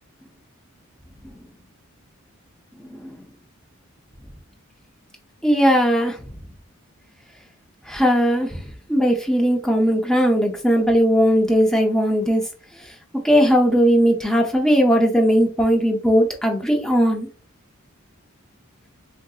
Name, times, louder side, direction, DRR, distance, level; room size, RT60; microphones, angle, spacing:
voice 1, 5.4-6.2 7.9-8.6 8.9-12.4 13.2-17.3, equal, 5° left, 1 dB, 0.5 m, -18 dB
3.7 x 2.5 x 2.3 m, 0.37 s
head